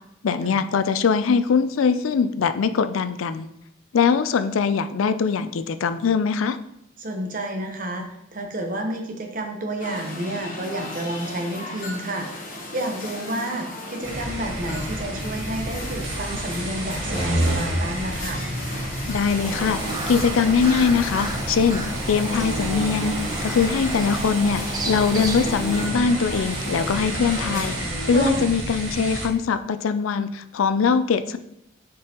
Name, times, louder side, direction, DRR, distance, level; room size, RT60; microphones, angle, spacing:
voice 1, 0.2-3.5 3.9-6.6 19.1-19.8 20.1-23.1 23.4-27.7 28.1-31.4, left 5 dB, 85° left, 11 dB, 0.4 m, -22 dB
voice 2, 7.0-8.0 8.3-12.4 12.7-18.4 28.3-28.5, right 1 dB, 40° right, 3 dB, 0.9 m, -30 dB
sound 1, 9.8-27.9, left 1 dB, 40° left, 1.1 m, -36 dB
sound 2, 14.0-29.3, right 1 dB, 80° right, 1.3 m, -29 dB
sound 3, 19.4-25.9, right 2 dB, 20° right, 0.6 m, -34 dB
6.5 x 5.3 x 3.0 m, 0.78 s
head